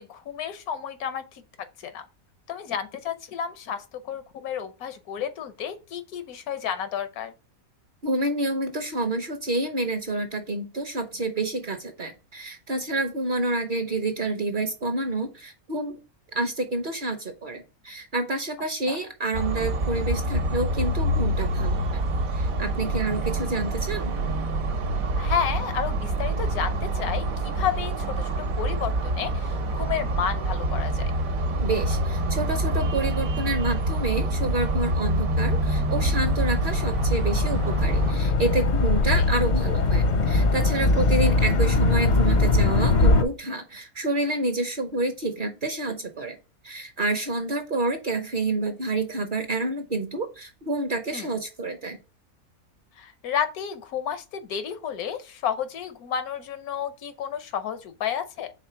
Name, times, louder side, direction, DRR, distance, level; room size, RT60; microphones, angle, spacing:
voice 1, 0.0-1.4 1.8-2.0 2.5-7.3 18.9-19.0 25.2-31.1 39.1-39.2 51.1-51.3 53.0-58.5, left 8 dB, 85° left, 1.3 m, -31 dB
voice 2, 8.0-16.0 16.3-22.0 22.3-24.1 31.6-46.4 46.6-52.0, right 2 dB, 45° right, 0.7 m, -28 dB
sound 1, 19.3-38.1, right 1 dB, 70° right, 1.4 m, -26 dB
sound 2, 35.2-43.2, left 3 dB, 50° left, 0.6 m, -22 dB
4.9 x 3.8 x 5.6 m
omnidirectional pair, 1.5 m